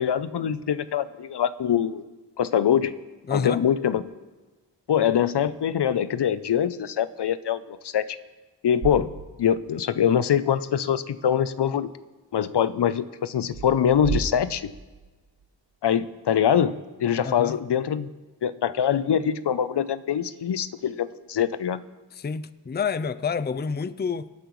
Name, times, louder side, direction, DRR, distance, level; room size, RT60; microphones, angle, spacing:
voice 1, 0.0-2.0 2.4-2.9 3.3-4.0 4.9-8.0 8.6-9.1 9.4-11.9 12.3-14.7 15.8-18.1 18.4-21.8, left 9 dB, 70° left, 14 dB, 0.6 m, -24 dB
voice 2, 3.3-3.6 17.2-17.6 22.1-24.3, left 5 dB, 25° left, 15 dB, 0.5 m, -28 dB
sound 1, 8.8-9.8 10.1-10.2 13.4-15.5, right 5 dB, 75° right, 1.0 m, -34 dB
24.5 x 9.0 x 3.1 m, 1.2 s
cardioid pair, 50°, 42 cm